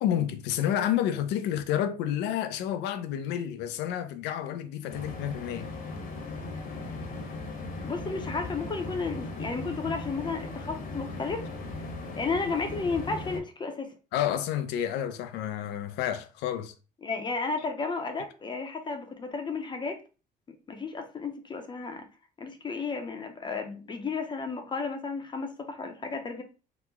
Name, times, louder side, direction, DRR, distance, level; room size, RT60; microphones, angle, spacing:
voice 1, 0.0-5.7 14.1-16.7, left 10 dB, 85° left, 0.4 m, -30 dB
sound 1, 4.9-13.4, left 2 dB, 55° left, 0.9 m, -38 dB
voice 2, 7.8-11.5 12.2-13.9 17.0-20.0 20.5-22.1 22.4-26.4, left 4 dB, 25° left, 0.5 m, -33 dB
3.0 x 2.1 x 3.4 m
cardioid pair, 110°, 17 cm